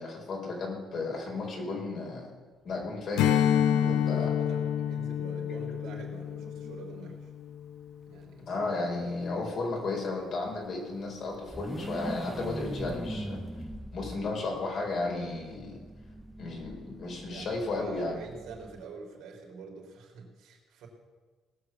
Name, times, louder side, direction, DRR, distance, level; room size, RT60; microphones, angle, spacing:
voice 1, 0.0-2.3 2.6-3.4 3.7-4.3 8.5-13.4 13.9-15.8 16.4-18.2, left 3 dB, 50° left, 0 dB, 4.6 m, -34 dB
sound 1, 2.8-2.9 3.2-3.3 4.9-7.5 9.8-18.8, right 1 dB, ahead, 0.9 m, -42 dB
Strum, 3.2-8.0, left 9 dB, 90° left, 0.6 m, -28 dB
voice 2, 3.7-7.3 8.1-8.6 17.3-20.9, right 4 dB, 80° right, 0 dB, 3.5 m, -45 dB
19.0 x 6.5 x 7.2 m, 1.4 s
cardioid pair, 110°, 0 cm